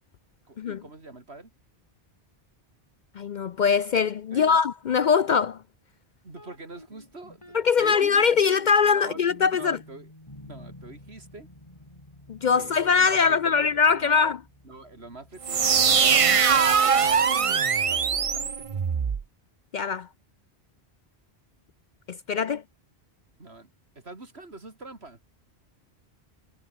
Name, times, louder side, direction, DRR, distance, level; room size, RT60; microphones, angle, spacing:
voice 1, 0.5-1.5 4.3-4.6 6.2-8.2 9.0-9.2 9.5-10.1 10.4-11.5 12.6-14.3 14.6-18.8 23.4-23.7 24.0-25.2, right 2 dB, 75° right, 3.8 m, -45 dB
voice 2, 3.2-5.6 7.5-9.8 12.3-14.4 19.7-20.1 22.1-22.6, left 6 dB, 55° left, 0.6 m, -22 dB
sound 1, 6.3-16.1, left 1 dB, 30° left, 4.7 m, -50 dB
sound 2, 15.4-19.2, right 6 dB, 40° right, 0.6 m, -21 dB
omnidirectional pair, 1.1 m